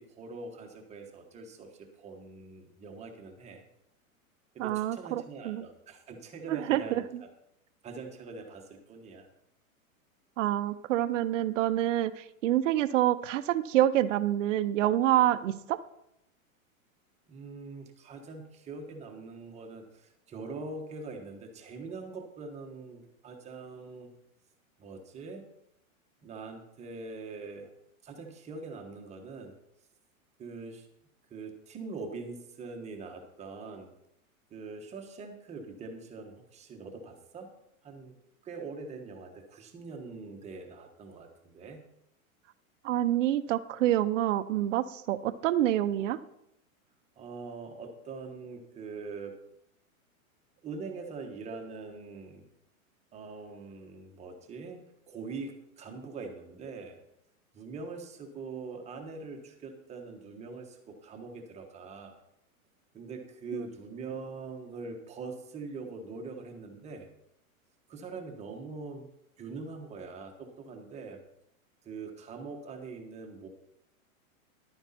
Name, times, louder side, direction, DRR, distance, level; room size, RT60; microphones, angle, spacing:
voice 1, 0.0-3.6 4.5-7.3 7.8-9.3 17.3-24.1 24.8-25.5 26.2-27.7 28.0-29.5 30.4-30.9 31.3-33.9 34.5-37.5 37.8-38.1 38.4-41.8 47.2-49.4 50.6-52.4 53.1-57.0 57.5-62.2 62.9-67.1 67.9-69.1 69.4-71.2 71.8-73.5, right 4 dB, 15° right, 3 dB, 1.3 m, -43 dB
voice 2, 4.6-5.6 6.5-6.8 10.4-12.1 12.4-15.8 42.8-46.2, right 13 dB, 60° right, 12 dB, 0.8 m, -27 dB
11.5 x 9.1 x 4.2 m, 0.78 s
supercardioid pair, 155°, 43 cm